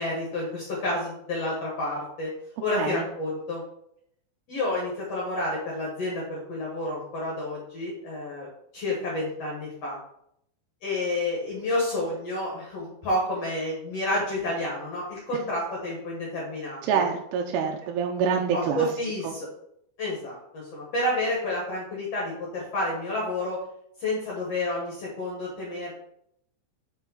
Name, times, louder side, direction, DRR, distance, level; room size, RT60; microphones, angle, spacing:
voice 1, 0.0-2.3 2.6-3.6 4.5-8.5 8.7-10.0 10.8-17.0 18.5-19.5 20.0-23.6 24.0-25.9, left 1 dB, 55° left, -3 dB, 1.8 m, -30 dB
voice 2, 16.8-18.9 19.2-19.3, right 6 dB, 90° right, 2 dB, 2.6 m, -26 dB
6.0 x 5.4 x 4.0 m, 0.73 s
omnidirectional pair, 4.6 m